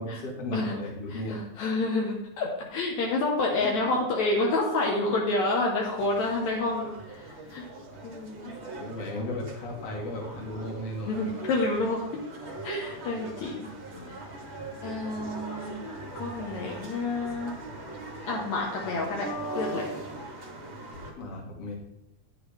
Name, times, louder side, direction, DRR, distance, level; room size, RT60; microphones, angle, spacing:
voice 1, 0.0-1.4 3.6-3.9 8.7-11.3 13.9-14.1 21.2-21.8, left 1 dB, 55° left, -1 dB, 2.6 m, -35 dB
voice 2, 1.1-7.7 8.0-8.5 11.1-12.0 12.6-13.7 14.1-14.2 14.8-15.8 16.2-17.5 18.3-19.3 19.5-19.9, left 2 dB, 75° left, -1 dB, 2.4 m, -29 dB
sound 1, 6.0-21.1, right 1 dB, 45° right, 0.9 m, -40 dB
9.5 x 7.7 x 3.4 m, 0.85 s
omnidirectional pair, 3.4 m